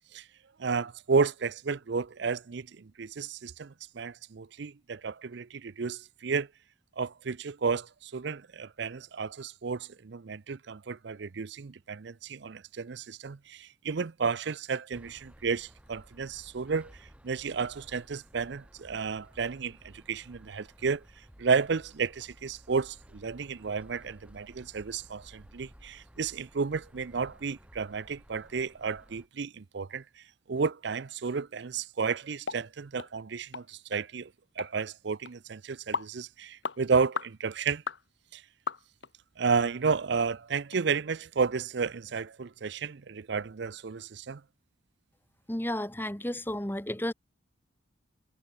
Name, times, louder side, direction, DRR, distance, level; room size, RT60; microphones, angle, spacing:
voice 1, 0.6-6.5 7.0-21.0 21.4-30.2 30.5-34.3 34.6-37.8 38.3-38.4 39.4-44.4, right 5 dB, 55° right, 0.5 m, -32 dB
sound 1, 14.9-29.3, equal, 5° right, 1.6 m, -55 dB
sound 2, 32.5-32.6 33.0-33.1 33.5-33.7 33.9-34.0 34.6-34.7 35.3-35.4 35.9-36.1 36.6-36.8 37.2-37.3 37.9-38.0 38.7-39.1 39.6-39.7 40.2-40.3 40.7-40.8, left 4 dB, 60° left, 1.5 m, -35 dB
voice 2, 45.5-47.1, left 1 dB, 10° left, 1.2 m, -32 dB
head